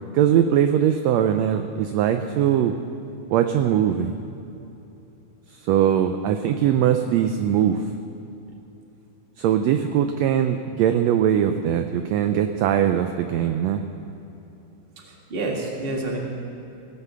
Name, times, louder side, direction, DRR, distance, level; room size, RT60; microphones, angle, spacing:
voice 1, 0.1-2.7 3.3-4.2 5.7-7.8 9.4-13.8, right 9 dB, 80° right, 7 dB, 1.6 m, -21 dB
voice 2, 15.0-16.2, right 2 dB, 25° right, -1 dB, 1.5 m, -29 dB
17.5 x 8.3 x 6.7 m, 2.9 s
omnidirectional pair, 3.5 m